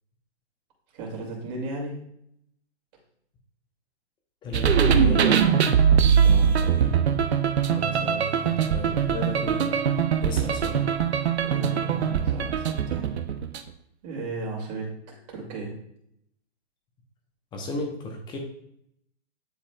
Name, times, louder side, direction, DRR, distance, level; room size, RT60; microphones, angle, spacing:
voice 1, 0.9-2.0 6.2-6.9 10.4-10.5 11.4-13.1 14.0-14.9 15.3-15.7, right 3 dB, 35° right, -2 dB, 2.6 m, -35 dB
voice 2, 4.4-5.4 7.7-9.8 10.2-10.8 17.5-18.4, left 3 dB, 15° left, 2 dB, 1.0 m, -33 dB
sound 1, 4.5-13.7, right 7 dB, 70° right, 0.7 m, -22 dB
10.5 x 4.1 x 2.4 m, 0.73 s
hypercardioid pair, 140°, 34 cm